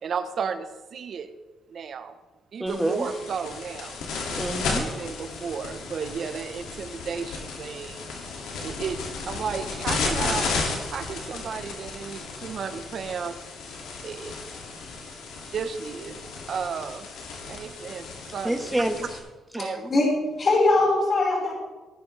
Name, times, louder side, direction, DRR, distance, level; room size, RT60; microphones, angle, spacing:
voice 1, 0.0-1.3 1.7-2.2 2.5-4.0 5.0-8.1 8.6-10.5 10.9-13.4 14.0-14.8 15.5-16.2 16.5-17.1 17.5-18.7 19.6-19.9, right 6 dB, 55° right, 10 dB, 1.1 m, -33 dB
voice 2, 2.6-3.1 4.4-5.0 8.3-8.4 18.4-19.1 19.5-19.9, right 1 dB, 10° right, 5 dB, 1.6 m, -28 dB
sound 1, 2.7-19.2, left 4 dB, 85° left, 2.6 m, -34 dB
voice 3, 19.6-21.5, left 2 dB, 40° left, -3 dB, 5.4 m, -22 dB
18.0 x 12.0 x 3.5 m, 1.2 s
cardioid pair, 90°, 0 cm